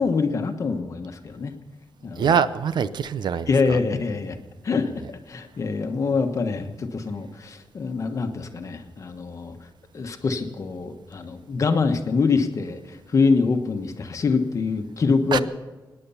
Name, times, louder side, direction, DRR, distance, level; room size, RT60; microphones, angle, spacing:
voice 1, 0.0-1.5 2.0-2.3 3.5-4.4 4.6-9.6 9.9-15.4, left 4 dB, 40° left, 6 dB, 1.2 m, -25 dB
voice 2, 2.2-3.8 15.3-15.4, right 7 dB, 65° right, 14 dB, 0.6 m, -24 dB
25.0 x 10.0 x 5.7 m, 1.2 s
wide cardioid pair, 165°, 8 cm